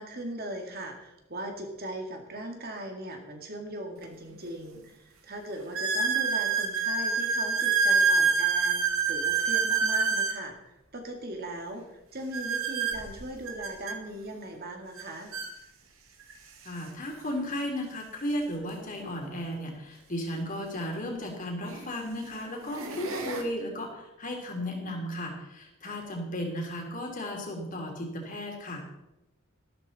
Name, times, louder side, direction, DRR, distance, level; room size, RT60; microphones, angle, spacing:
voice 1, 0.0-15.3 25.8-26.0, right 1 dB, 45° right, 3 dB, 2.2 m, -39 dB
sound 1, 4.0-4.1 4.8-4.9 5.7-10.4 12.3-14.0 15.0-15.1 15.3-15.5 16.3-16.4 18.6-18.7 20.8-20.9 21.6-21.9 22.5-23.4, right 5 dB, 75° right, 2.0 m, -27 dB
voice 2, 16.6-28.9, equal, 40° left, 1 dB, 3.3 m, -35 dB
13.5 x 12.5 x 4.2 m, 0.91 s
head